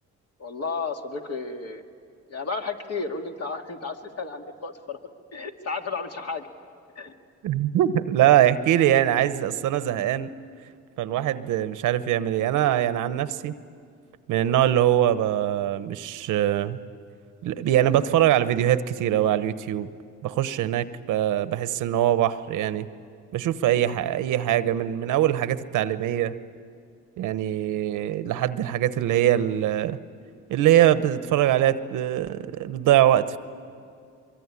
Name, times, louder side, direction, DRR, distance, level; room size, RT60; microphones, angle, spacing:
voice 1, 0.4-1.8 2.3-5.0 5.3-6.5 7.0-7.1 14.7-14.8, left 4 dB, 55° left, 3 dB, 2.3 m, -33 dB
voice 2, 7.4-10.3 11.0-13.5 14.3-16.8 17.4-19.9 20.2-22.9 23.3-26.3 27.2-30.0 30.5-33.4, right 12 dB, 85° right, 13 dB, 1.0 m, -22 dB
24.0 x 23.0 x 9.8 m, 2.3 s
cardioid pair, 90°, 30 cm